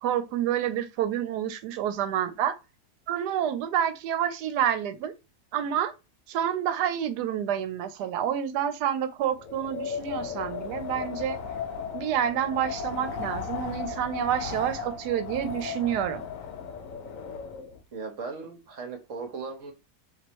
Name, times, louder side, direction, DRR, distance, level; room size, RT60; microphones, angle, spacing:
voice 1, 0.0-2.5 3.1-5.1 5.5-5.9 6.3-11.4 11.9-16.3, right 10 dB, 80° right, 1.2 m, -28 dB
Wind, 9.4-17.8, left 6 dB, 65° left, 1.0 m, -36 dB
voice 2, 17.9-19.7, right 4 dB, 55° right, 1.1 m, -37 dB
3.0 x 2.9 x 4.4 m
omnidirectional pair, 1.7 m